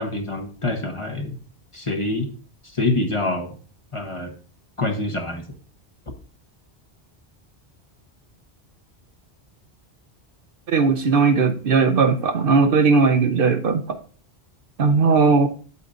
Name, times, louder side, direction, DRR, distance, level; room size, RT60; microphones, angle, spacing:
voice 1, 0.0-1.4 1.7-2.3 2.7-3.5 3.9-4.3 4.8-5.4, left 2 dB, 30° left, 1.1 m, -25 dB
voice 2, 10.7-14.0 14.8-15.5, right 4 dB, 60° right, 0.8 m, -18 dB
8.3 x 8.3 x 2.6 m
omnidirectional pair, 1.1 m